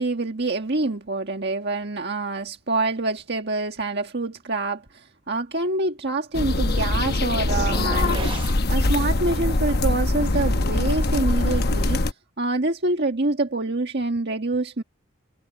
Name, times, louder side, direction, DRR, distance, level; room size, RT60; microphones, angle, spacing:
voice 1, 0.0-8.4 8.7-12.0 12.4-14.8, right 2 dB, 50° right, 1.7 m, -26 dB
sound 1, 6.3-12.1, left 2 dB, 50° left, 1.0 m, -22 dB
sound 2, 7.4-8.6, right 3 dB, 25° right, 0.8 m, -33 dB
head